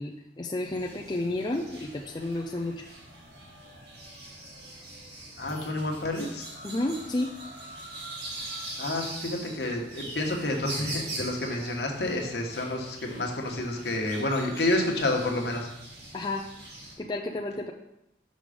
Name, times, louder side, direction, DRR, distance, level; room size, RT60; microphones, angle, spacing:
voice 1, 0.0-2.9 6.6-7.3 16.1-16.4 17.0-17.7, left 2 dB, 25° left, 0 dB, 0.4 m, -31 dB
sound 1, 0.6-16.9, right 1 dB, 70° right, 2.1 m, -42 dB
voice 2, 5.4-6.5 8.8-15.7, left 1 dB, 70° left, 1 dB, 1.3 m, -29 dB
6.3 x 5.3 x 5.0 m, 0.86 s
head